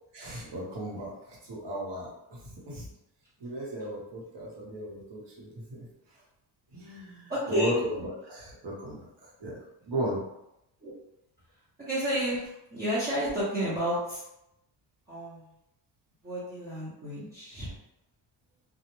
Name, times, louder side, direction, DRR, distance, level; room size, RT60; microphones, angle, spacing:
voice 1, 0.1-2.9 3.4-5.9 6.7-9.5 9.9-10.2, right 1 dB, 60° right, -4 dB, 1.1 m, -36 dB
voice 2, 7.3-7.7 10.8-10.9 11.8-14.2 15.1-15.5 16.2-17.7, equal, 20° right, -11 dB, 0.7 m, -31 dB
2.3 x 2.0 x 2.9 m, 0.83 s
cardioid pair, 135°, 47 cm